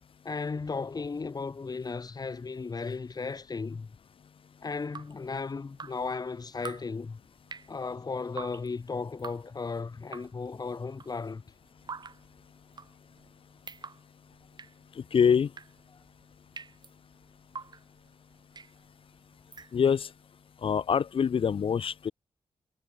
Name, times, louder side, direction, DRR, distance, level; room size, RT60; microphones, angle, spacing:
voice 1, 0.2-3.9 4.6-7.2 7.7-11.4, left 4 dB, 40° left, 6.0 m, -35 dB
Drip, 4.7-20.2, right 5 dB, 45° right, 5.4 m, -48 dB
voice 2, 14.9-15.5 19.7-20.1 20.6-22.1, left 7 dB, 60° left, 1.2 m, -25 dB
wide cardioid pair, 110°, 10 cm